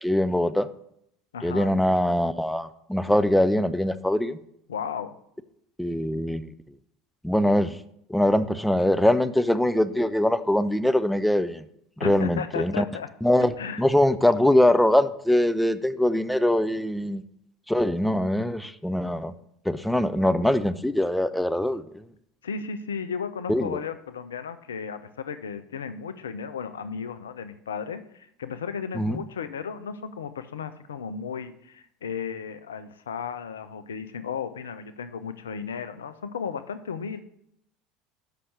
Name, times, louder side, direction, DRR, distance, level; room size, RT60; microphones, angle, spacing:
voice 1, 0.0-0.7 1.4-4.4 5.8-6.5 7.2-7.8 8.1-11.6 12.0-12.8 13.2-13.5 13.8-17.2 17.7-19.3 19.7-22.0 23.5-23.8 29.0-29.2, left 1 dB, 5° left, 13 dB, 0.5 m, -22 dB
voice 2, 1.3-1.7 4.7-5.2 12.0-13.1 13.6-13.8 22.4-37.2, left 6 dB, 75° left, 11 dB, 0.5 m, -34 dB
6.8 x 5.6 x 6.3 m, 0.74 s
figure-of-eight pair, 70°, 0 cm